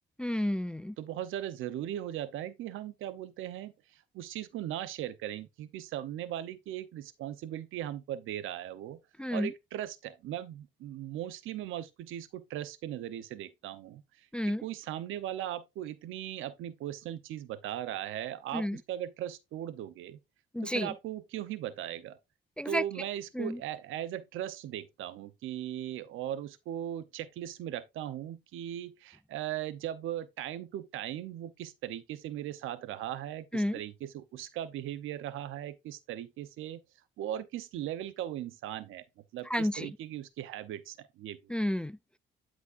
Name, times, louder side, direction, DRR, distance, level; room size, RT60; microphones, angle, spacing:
voice 1, 0.2-1.0 9.2-9.5 14.3-14.6 18.5-18.8 20.5-20.9 22.6-23.1 23.3-23.6 33.5-33.8 39.5-39.9 41.5-42.2, equal, 5° left, 0.3 m, -31 dB
voice 2, 1.0-9.0 9.3-20.2 20.6-22.2 22.6-36.8 37.2-39.0 39.3-41.5, right 12 dB, 85° right, 0.8 m, -38 dB
12.0 x 5.1 x 2.6 m
cardioid pair, 90°, 20 cm